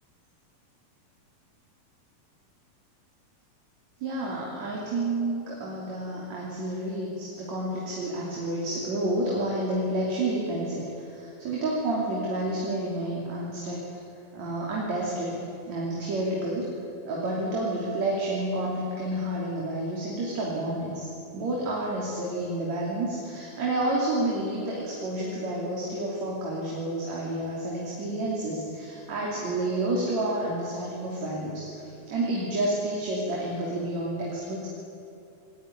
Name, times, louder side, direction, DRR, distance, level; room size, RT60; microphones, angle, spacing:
voice 1, 4.0-13.8 14.3-15.4 15.7-16.7 17.0-34.7, right 1 dB, 50° right, -4 dB, 4.2 m, -30 dB
20.0 x 19.5 x 10.0 m, 2.6 s
omnidirectional pair, 4.1 m